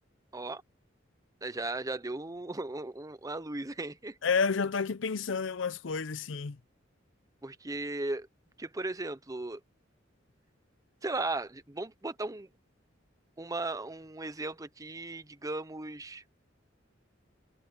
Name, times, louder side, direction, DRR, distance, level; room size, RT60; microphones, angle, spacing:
voice 1, 1.4-4.1 7.4-8.3 8.6-9.6 11.0-12.5 13.4-16.2, right 2 dB, 20° right, 0.8 m, -36 dB
voice 2, 4.2-6.6, left 5 dB, 75° left, 0.6 m, -30 dB
head